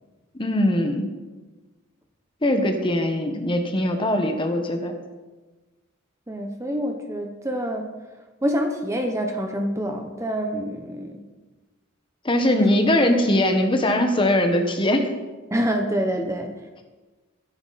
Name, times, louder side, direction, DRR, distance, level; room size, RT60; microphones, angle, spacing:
voice 1, 0.4-1.1 2.4-4.9 12.2-15.1, left 1 dB, 25° left, 5 dB, 1.4 m, -21 dB
voice 2, 6.3-7.9 8.4-11.2 15.5-16.5, equal, 15° right, 4 dB, 1.0 m, -26 dB
21.5 x 10.5 x 4.2 m, 1.3 s
head